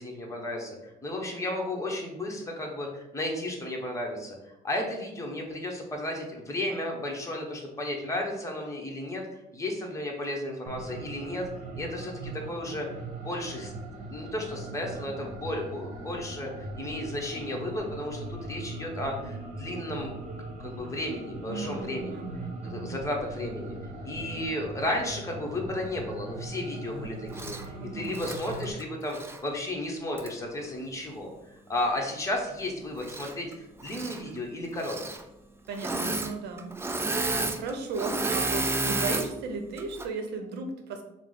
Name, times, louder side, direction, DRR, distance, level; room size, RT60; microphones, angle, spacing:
voice 1, 0.0-9.2 9.5-11.5 11.7-12.9 13.2-13.7 14.1-20.2 20.6-22.2 22.6-23.7 24.0-35.0, left 1 dB, 20° left, 0 dB, 0.9 m, -33 dB
sound 1, 10.7-28.7, right 2 dB, 45° right, 1.1 m, -40 dB
voice 2, 21.5-22.9 27.8-28.1 35.7-36.7 37.6-41.0, right 4 dB, 75° right, 4 dB, 0.7 m, -35 dB
Engine / Mechanisms, 27.3-27.6 28.1-29.4 30.2-30.3 33.0-33.5 33.8-34.2 34.8-35.2 35.7-36.3 36.6-39.3 39.8-40.1, right 2 dB, 15° right, 0.3 m, -31 dB
4.7 x 2.1 x 3.8 m, 0.91 s
cardioid pair, 110°, 17 cm